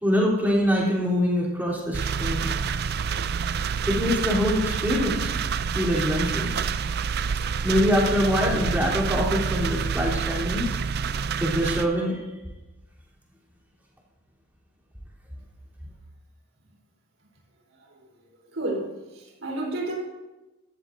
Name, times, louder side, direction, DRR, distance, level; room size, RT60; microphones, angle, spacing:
voice 1, 0.0-2.5 3.9-5.3 5.7-6.6 7.6-10.7 11.4-12.2, equal, 10° right, 3.4 m, -24 dB
sound 1, 1.9-11.9, right 6 dB, 50° right, 0.4 m, -27 dB
voice 2, 18.5-20.0, right 2 dB, 70° right, 4.0 m, -31 dB
16.5 x 13.0 x 2.7 m
head